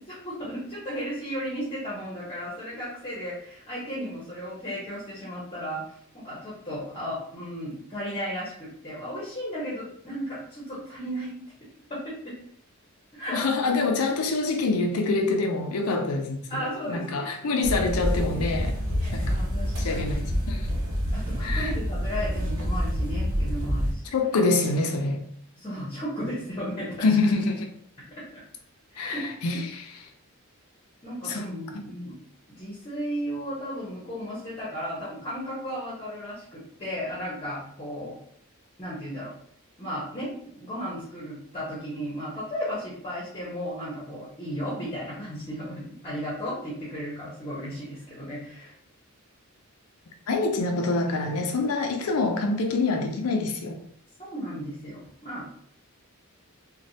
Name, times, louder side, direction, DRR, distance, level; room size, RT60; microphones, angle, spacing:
voice 1, 0.1-11.3 11.9-12.3 13.1-13.4 16.5-17.3 19.0-20.2 21.1-24.0 25.6-27.1 28.2-28.4 28.9-29.3 31.0-32.2 32.5-38.1 38.8-39.3 39.8-48.7 54.2-55.5, equal, 25° left, 0.9 m, -35 dB
voice 2, 13.3-18.8 19.1-19.2 19.8-20.7 21.4-21.7 24.1-25.2 27.0-27.7 29.0-30.1 31.2-31.4 31.7-31.8 50.3-53.8, left 3 dB, 85° left, 0.5 m, -26 dB
sound 1, 17.6-23.9, equal, 70° right, 0.8 m, -27 dB
3.1 x 2.2 x 2.7 m
head